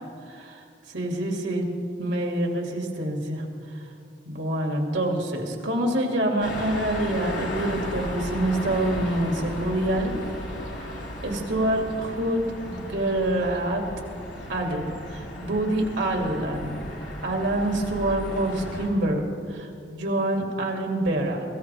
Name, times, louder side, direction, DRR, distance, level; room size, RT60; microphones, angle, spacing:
voice 1, 0.3-0.6 0.9-1.7 2.0-3.4 4.3-10.2 11.2-13.8 14.5-16.8 17.2-21.4, right 1 dB, 80° right, 1 dB, 2.5 m, -26 dB
sound 1, 6.4-18.9, left 1 dB, 90° left, 4.0 m, -35 dB
24.5 x 15.5 x 3.5 m, 2.4 s
head